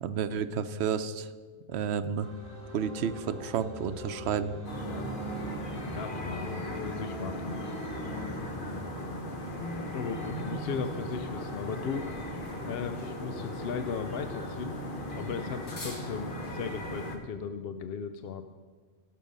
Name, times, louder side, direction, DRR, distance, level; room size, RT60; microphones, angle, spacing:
voice 1, 0.0-1.3 1.7-2.3 2.7-4.6, right 7 dB, 70° right, 12 dB, 0.9 m, -31 dB
sound 1, 2.2-8.4, right 2 dB, 5° left, 2.1 m, -42 dB
sound 2, 4.6-17.2, left 1 dB, 50° left, 1.3 m, -37 dB
voice 2, 5.9-7.7 9.9-12.1 12.7-14.8 15.1-18.5, left 6 dB, 65° left, 9 dB, 0.7 m, -37 dB
sound 3, 10.3-16.8, equal, 90° left, 2.6 m, -46 dB
16.5 x 6.6 x 5.3 m, 1.5 s
omnidirectional pair, 1.2 m